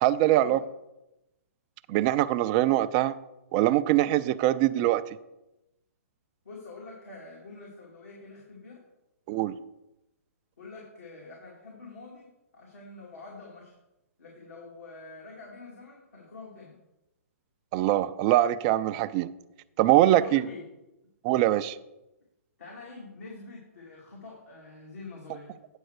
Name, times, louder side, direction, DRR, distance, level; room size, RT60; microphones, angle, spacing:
voice 1, 0.0-0.6 1.9-3.1 3.5-5.0 9.3-9.5 17.7-19.3 19.8-20.4 21.2-21.8, right 14 dB, 30° right, 13 dB, 0.4 m, -23 dB
voice 2, 6.4-8.8 10.6-13.7 14.2-16.8 20.1-20.6 22.6-25.6, left 3 dB, 70° left, -4 dB, 2.5 m, -46 dB
8.9 x 4.5 x 6.5 m, 0.94 s
hypercardioid pair, 130°, 8 cm